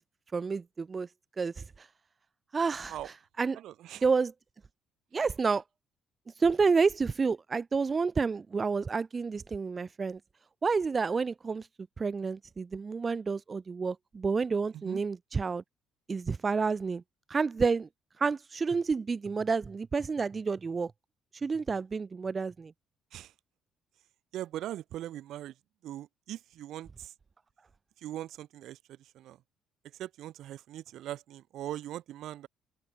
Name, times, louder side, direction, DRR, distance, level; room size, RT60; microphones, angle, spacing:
voice 1, 0.3-1.1 1.4-1.9 2.5-3.6 4.0-4.3 5.1-5.6 6.4-10.2 10.6-11.7 12.0-15.6 16.1-17.0 17.3-17.9 18.2-20.9 21.3-22.7, right 5 dB, 30° right, 0.8 m, -29 dB
voice 2, 3.5-4.1 14.7-15.0 23.1-23.3 24.3-25.5 25.8-27.1 28.0-28.8 29.2-29.4 30.0-32.5, right 13 dB, 70° right, 2.1 m, -40 dB
open air
cardioid pair, 115°, 0 cm